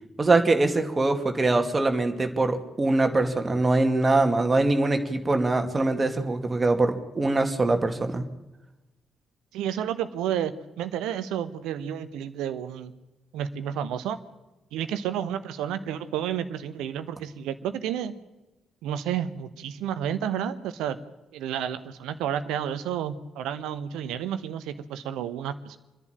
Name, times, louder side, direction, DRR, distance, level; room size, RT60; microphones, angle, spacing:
voice 1, 0.2-8.3, right 2 dB, 25° right, 6 dB, 2.4 m, -23 dB
voice 2, 9.5-12.9 13.3-14.2 14.7-18.1 18.8-21.0 21.3-25.8, right 9 dB, 65° right, 12 dB, 1.1 m, -31 dB
28.0 x 11.0 x 9.0 m, 1.1 s
figure-of-eight pair, 40°, 0 cm